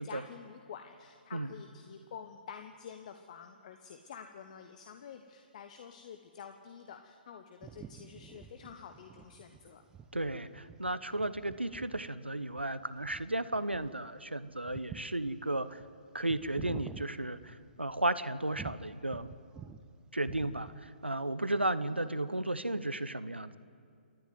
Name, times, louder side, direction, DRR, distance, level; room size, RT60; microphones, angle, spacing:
voice 1, 0.0-9.8 21.9-22.4, left 7 dB, 45° left, 6 dB, 1.2 m, -49 dB
sound 1, 7.6-18.0 18.5-19.9 20.1-21.0, right 7 dB, 10° right, 0.8 m, -49 dB
voice 2, 10.1-15.8 16.1-19.3 20.1-23.6, right 1 dB, 85° right, 14 dB, 1.0 m, -34 dB
28.0 x 11.5 x 9.3 m, 2.4 s
figure-of-eight pair, 130°, 6 cm